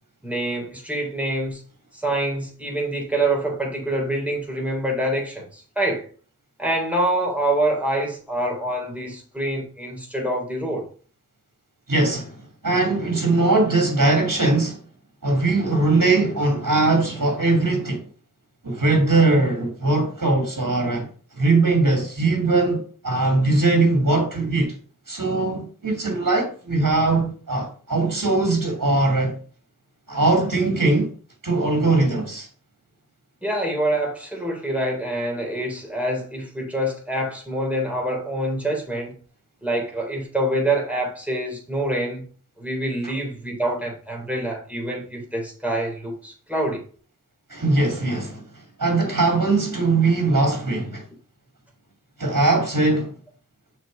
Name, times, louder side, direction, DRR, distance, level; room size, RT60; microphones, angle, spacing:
voice 1, 0.2-1.6 1.9-6.0 6.6-10.9 33.4-39.2 39.6-42.2 42.6-46.8, right 1 dB, 5° right, 3.8 m, -26 dB
voice 2, 11.9-12.4 12.6-14.8 15.2-18.0 18.6-21.1 21.4-24.7 25.1-29.3 30.1-31.1 31.4-32.5 47.5-48.4 48.8-51.0 52.2-53.1, right 2 dB, 65° right, 2.5 m, -20 dB
6.7 x 4.8 x 5.2 m
wide cardioid pair, 40°, 33 cm